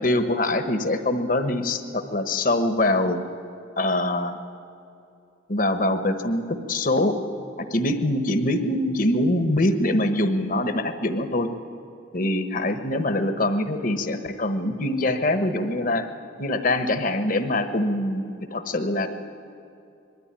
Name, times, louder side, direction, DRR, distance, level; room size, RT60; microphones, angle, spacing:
voice 1, 0.0-3.2 3.8-4.4 5.5-7.1 7.6-11.5 12.1-16.1 16.4-19.1, left 1 dB, 45° left, 8 dB, 1.2 m, -24 dB
21.0 x 13.5 x 9.9 m, 2.7 s
head